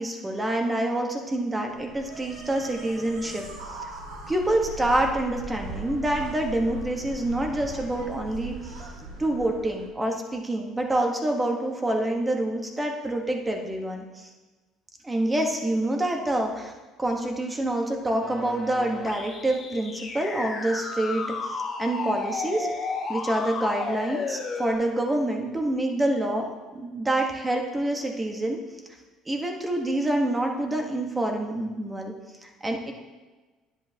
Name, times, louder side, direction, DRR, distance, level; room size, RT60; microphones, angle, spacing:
voice 1, 0.0-3.9 4.3-8.9 9.2-14.3 15.0-16.7 17.0-22.7 23.1-28.6 29.3-32.1 32.4-32.9, right 1 dB, 15° right, 2 dB, 1.3 m, -27 dB
sound 1, 1.7-9.9, right 1 dB, 85° right, 1.8 m, -39 dB
sound 2, 18.2-24.7, left 4 dB, 40° left, 2.0 m, -33 dB
10.0 x 8.2 x 2.9 m, 1.3 s
cardioid pair, 110°, 0 cm